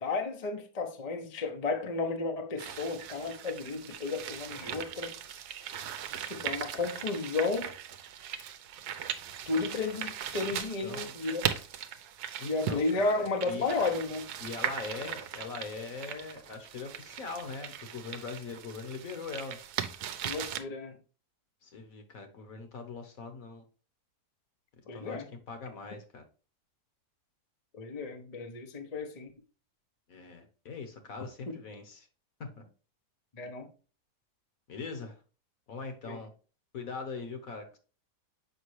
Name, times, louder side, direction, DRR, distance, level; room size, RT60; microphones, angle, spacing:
voice 1, 0.0-5.1 6.2-7.7 9.5-11.5 12.4-14.2 20.2-21.0 24.9-25.3 27.7-29.3 31.5-31.6 33.3-33.7 36.0-36.2, left 3 dB, 35° left, 0.6 m, -33 dB
sound 1, 2.6-20.6, right 9 dB, 75° right, 1.1 m, -39 dB
voice 2, 10.5-11.1 12.4-13.8 14.4-19.6 21.6-23.6 24.9-26.2 30.1-32.1 32.4-32.6 34.7-35.1 35.7-36.3 36.7-37.8, left 4 dB, 55° left, 1.4 m, -41 dB
7.1 x 5.2 x 3.1 m
omnidirectional pair, 1.8 m